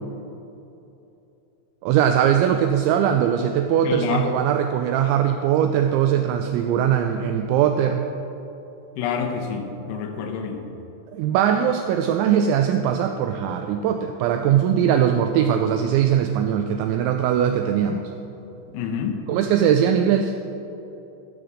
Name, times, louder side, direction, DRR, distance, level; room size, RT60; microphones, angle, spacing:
voice 1, 1.8-8.1 11.1-18.1 19.3-20.3, right 9 dB, 90° right, 5 dB, 2.6 m, -20 dB
voice 2, 3.9-4.3 9.0-10.7 18.7-19.2, left 6 dB, 85° left, 2 dB, 3.7 m, -27 dB
13.0 x 6.9 x 6.2 m, 2.9 s
omnidirectional pair, 5.7 m